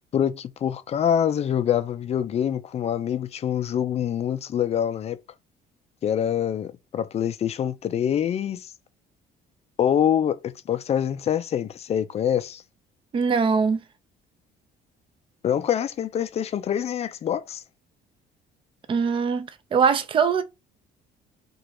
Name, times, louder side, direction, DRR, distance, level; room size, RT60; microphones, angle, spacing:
voice 1, 0.1-5.2 6.0-8.7 9.8-12.6 15.4-17.6, left 9 dB, 40° left, 0.4 m, -25 dB
voice 2, 13.1-13.8 18.9-20.4, right 6 dB, 30° right, 0.4 m, -22 dB
3.0 x 2.4 x 2.9 m
cardioid pair, 110°, 17 cm